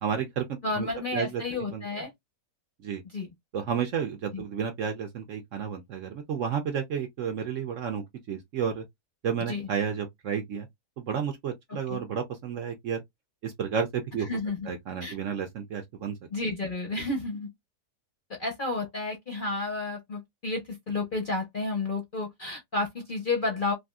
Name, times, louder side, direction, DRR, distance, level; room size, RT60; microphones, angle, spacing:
voice 1, 0.0-1.9 2.8-3.0 3.5-8.8 9.2-10.7 11.0-13.0 13.4-14.3 14.7-16.2, right 7 dB, 60° right, 0.8 m, -31 dB
voice 2, 0.6-2.1 3.1-3.3 4.3-4.4 9.5-9.7 11.9-12.0 14.3-14.7 15.0-15.2 16.3-17.5 18.4-23.7, left 3 dB, 45° left, 0.7 m, -31 dB
3.3 x 2.6 x 2.2 m
omnidirectional pair, 1.8 m